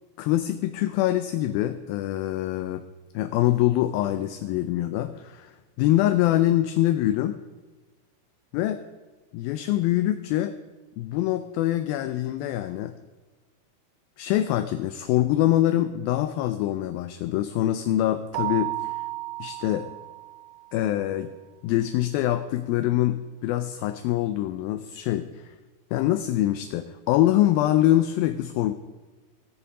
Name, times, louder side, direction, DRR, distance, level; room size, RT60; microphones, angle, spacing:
voice 1, 0.2-2.8 3.1-7.4 8.5-8.8 9.3-10.6 11.0-13.0 14.2-19.0 19.4-19.9 20.7-21.3 21.6-25.6 25.9-28.7, left 13 dB, 80° left, 10 dB, 2.1 m, -24 dB
Keyboard (musical), 18.3-20.8, right 20 dB, 90° right, 2.7 m, -33 dB
19.0 x 7.0 x 4.9 m, 1.3 s
omnidirectional pair, 4.7 m